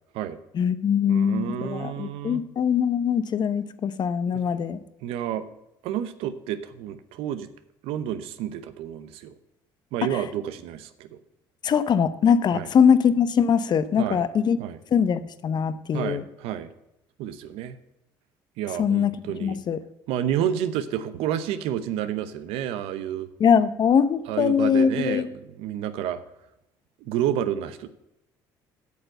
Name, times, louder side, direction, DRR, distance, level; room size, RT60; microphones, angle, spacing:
voice 1, 0.5-4.8 10.1-10.2 11.6-14.6 14.9-16.2 18.8-19.1 19.4-19.8 23.4-25.3, left 7 dB, 45° left, 14 dB, 0.8 m, -22 dB
voice 2, 1.1-2.4 4.2-4.4 5.0-5.5 5.8-7.5 7.8-9.3 9.9-11.2 12.5-12.7 14.0-14.2 14.6-14.8 15.9-16.7 17.2-17.8 18.6-19.6 20.1-23.3 24.3-25.3 25.6-26.2 27.0-27.9, right 10 dB, 75° right, 12 dB, 0.8 m, -30 dB
8.3 x 6.8 x 7.8 m, 0.84 s
supercardioid pair, 80°, 10 cm